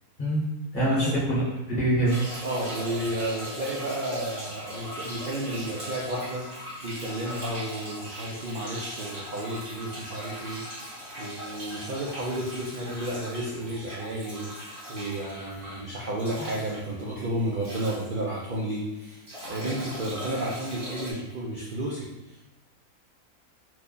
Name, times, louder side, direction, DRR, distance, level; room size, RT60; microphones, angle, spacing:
voice 1, 0.7-1.4 1.7-2.2 16.4-16.5, right 1 dB, 40° left, -7 dB, 1.0 m, -24 dB
sound 1, 2.0-18.7 19.0-21.1, equal, 40° right, 1.4 m, -39 dB
voice 2, 2.4-6.5 6.8-10.6 11.2-22.4, right 1 dB, 70° right, -4 dB, 0.4 m, -32 dB
3.1 x 2.2 x 3.8 m, 1.1 s
omnidirectional pair, 1.5 m